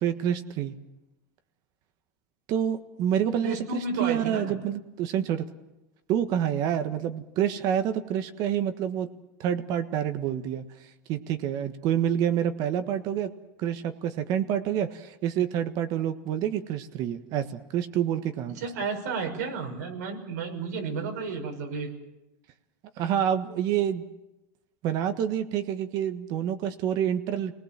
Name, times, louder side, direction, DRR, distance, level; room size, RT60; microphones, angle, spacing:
voice 1, 0.0-0.7 2.5-5.4 6.1-9.1 9.4-10.6 11.1-13.3 13.6-18.6 23.0-24.0 24.8-27.5, right 9 dB, 50° right, 9 dB, 1.5 m, -27 dB
voice 2, 3.4-4.5 18.5-21.9, right 4 dB, 90° right, 3 dB, 5.9 m, -32 dB
28.0 x 19.5 x 7.5 m, 0.97 s
supercardioid pair, 140°, 9 cm